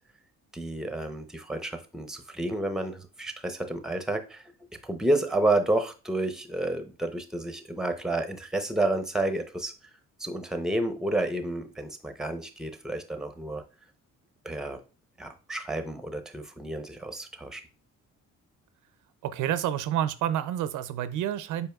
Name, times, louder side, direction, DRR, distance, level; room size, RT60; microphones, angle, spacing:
voice 1, 0.5-4.4 4.8-9.7 10.2-13.6 14.4-14.8 15.2-17.6, right 2 dB, ahead, 0.7 m, -30 dB
voice 2, 19.2-21.7, right 11 dB, 80° right, 0.5 m, -29 dB
5.4 x 4.3 x 2.3 m
cardioid pair, 90°, 30 cm